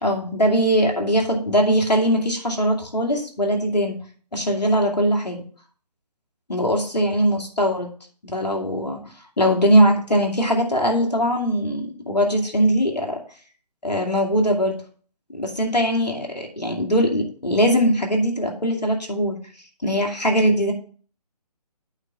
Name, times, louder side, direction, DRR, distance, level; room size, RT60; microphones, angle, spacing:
voice 1, 0.0-4.0 4.3-5.4 6.5-7.9 8.2-9.0 9.4-13.2 13.8-14.8 15.3-19.4 19.8-20.7, equal, 75° left, 1 dB, 2.4 m, -21 dB
8.8 x 3.7 x 5.7 m, 0.43 s
figure-of-eight pair, 145°, 21 cm